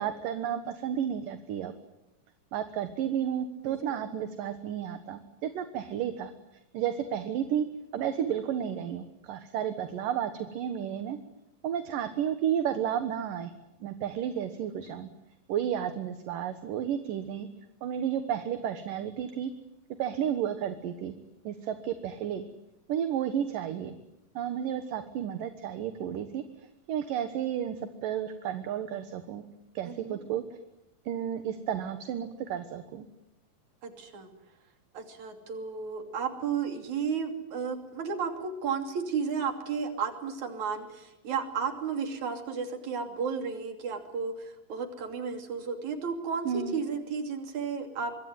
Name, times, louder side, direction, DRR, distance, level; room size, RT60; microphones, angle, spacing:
voice 1, 0.0-1.7 2.5-6.3 6.7-7.7 7.9-11.2 11.6-13.5 13.8-15.1 15.5-17.5 17.8-19.5 20.0-21.2 21.4-22.4 22.9-24.0 24.3-26.4 26.9-29.4 29.7-30.4 31.1-33.1 46.4-46.7, right 9 dB, 70° right, 9 dB, 2.9 m, -32 dB
voice 2, 3.6-4.0 29.8-30.2 33.8-34.3 34.9-48.1, right 6 dB, 55° right, 6 dB, 4.1 m, -33 dB
25.0 x 24.0 x 9.3 m, 0.87 s
omnidirectional pair, 4.2 m